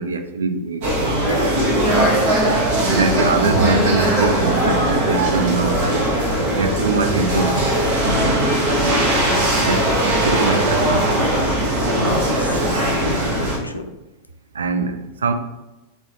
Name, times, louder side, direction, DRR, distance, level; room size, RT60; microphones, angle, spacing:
voice 1, 0.0-1.2 2.8-6.0 6.5-7.6 9.6-11.5 14.5-15.3, right 4 dB, 70° right, 7 dB, 0.4 m, -23 dB
sound 1, 0.8-13.6, right 1 dB, 50° right, 1.0 m, -19 dB
voice 2, 1.2-1.9 6.6-7.0 8.0-8.6 11.9-13.9, left 2 dB, 85° left, 7 dB, 0.4 m, -30 dB
3.6 x 3.6 x 3.1 m, 1.0 s
figure-of-eight pair, 90°, 0 cm